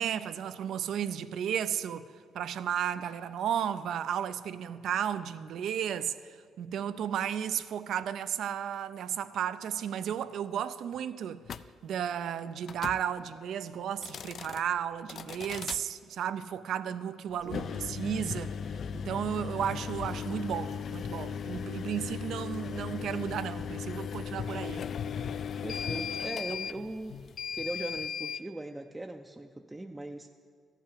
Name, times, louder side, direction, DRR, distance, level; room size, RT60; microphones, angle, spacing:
voice 1, 0.0-2.0 2.3-11.4 11.8-18.6 18.9-24.9, right 9 dB, 75° right, 0.4 m, -33 dB
sound 1, 11.4-11.7 12.6-13.0 13.9-14.6 15.1-15.8 17.4-28.4, left 7 dB, 55° left, 0.4 m, -37 dB
voice 2, 17.4-17.8 25.6-27.2 27.5-30.4, right 2 dB, 15° right, 0.5 m, -40 dB
14.0 x 5.8 x 8.5 m
cardioid pair, 90°, 0 cm